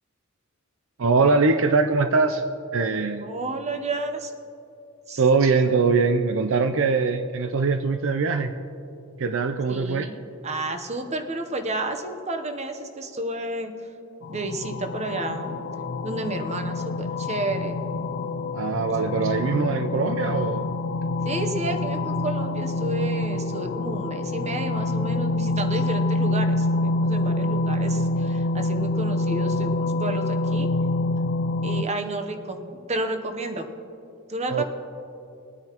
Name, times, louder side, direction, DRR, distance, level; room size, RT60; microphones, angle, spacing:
voice 1, 1.0-2.4 2.7-3.3 5.2-8.5 9.2-10.1 18.5-20.7 34.5-34.6, right 4 dB, 60° right, 8 dB, 0.5 m, -22 dB
voice 2, 3.2-4.3 5.1-5.2 9.7-10.2 10.4-13.7 14.3-15.6 16.0-17.8 21.2-30.7 31.6-32.6 32.9-33.7 34.3-34.6, right 2 dB, 30° right, 7 dB, 0.8 m, -31 dB
sound 1, 14.2-31.8, left 2 dB, 50° left, 0.4 m, -26 dB
21.0 x 9.5 x 2.9 m, 2.8 s
head